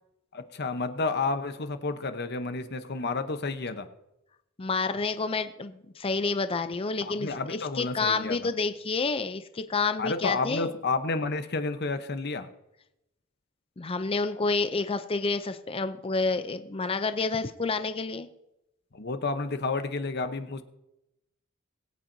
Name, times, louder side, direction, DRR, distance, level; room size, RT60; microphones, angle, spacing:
voice 1, 0.3-3.9 7.1-8.4 10.0-12.5 18.9-20.6, left 3 dB, 55° left, 9 dB, 0.9 m, -30 dB
voice 2, 4.6-10.7 13.8-18.3, left 4 dB, 25° left, 10 dB, 0.5 m, -29 dB
22.0 x 8.9 x 2.7 m, 0.87 s
head